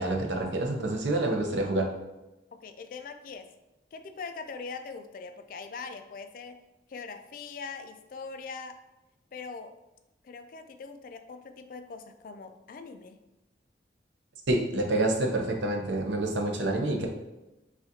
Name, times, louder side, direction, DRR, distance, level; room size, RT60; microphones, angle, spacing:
voice 1, 0.0-1.9 14.5-17.1, right 2 dB, 90° right, 2 dB, 0.7 m, -27 dB
voice 2, 2.5-3.5 3.9-6.6 6.9-8.8 9.3-9.8 10.2-13.2, left 4 dB, 50° left, 8 dB, 0.3 m, -42 dB
6.1 x 2.4 x 2.7 m, 1.0 s
head